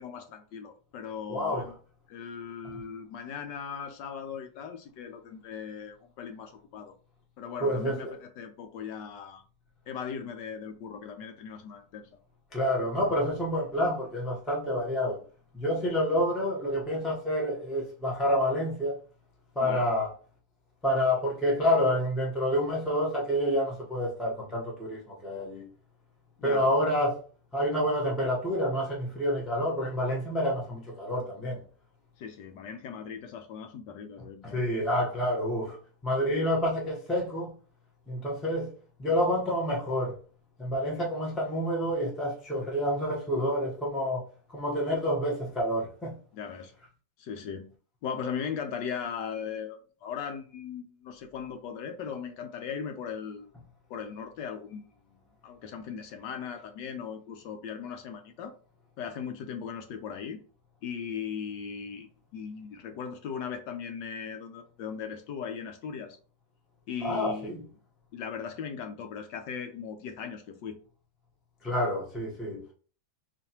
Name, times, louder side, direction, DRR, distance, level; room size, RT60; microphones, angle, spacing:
voice 1, 0.0-1.8 2.1-6.9 7.4-9.4 9.9-12.1 19.6-19.9 26.4-26.7 32.2-34.6 46.3-46.7 47.2-47.7 48.0-53.5 53.9-58.5 59.0-60.4 60.8-62.1 62.3-66.2 66.9-67.7 68.1-70.8, left 7 dB, 75° left, 1.2 m, -38 dB
voice 2, 1.3-1.7 7.6-8.2 12.5-15.2 15.5-19.0 19.5-20.1 20.8-25.7 26.4-27.2 27.5-31.6 34.5-37.5 38.1-40.2 40.6-44.2 44.5-46.1 67.0-67.6 71.6-72.7, equal, ahead, 0.4 m, -28 dB
4.2 x 3.1 x 2.9 m
omnidirectional pair, 2.1 m